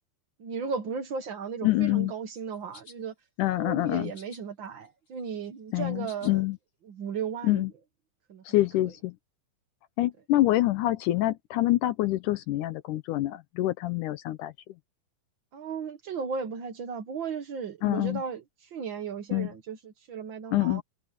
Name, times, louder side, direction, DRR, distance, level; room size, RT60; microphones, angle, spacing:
voice 1, 0.4-3.1 3.6-6.4 6.9-7.6 8.3-8.4 8.8-8.9 15.5-18.4 18.7-20.8, right 6 dB, 75° right, 1.1 m, -35 dB
voice 2, 1.6-2.1 3.4-4.1 5.7-6.6 7.4-7.7 8.5-9.2 10.0-14.5 17.8-18.2 19.3-19.5 20.5-20.8, left 16 dB, 75° left, 2.0 m, -26 dB
sound 1, 2.3-3.0 4.0-4.4 4.8-6.3, left 3 dB, 40° left, 0.8 m, -52 dB
omnidirectional pair, 4.1 m